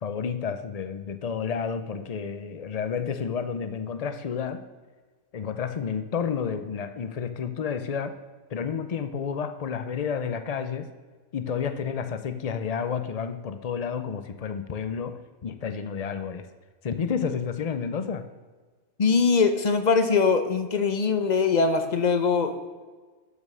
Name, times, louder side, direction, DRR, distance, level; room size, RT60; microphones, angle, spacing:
voice 1, 0.0-4.6 5.3-8.2 8.5-10.9 11.3-16.5 16.8-18.2, left 6 dB, 75° left, 10 dB, 0.3 m, -30 dB
voice 2, 19.0-22.7, left 5 dB, 35° left, 8 dB, 0.8 m, -22 dB
13.0 x 5.4 x 6.2 m, 1.4 s
omnidirectional pair, 1.5 m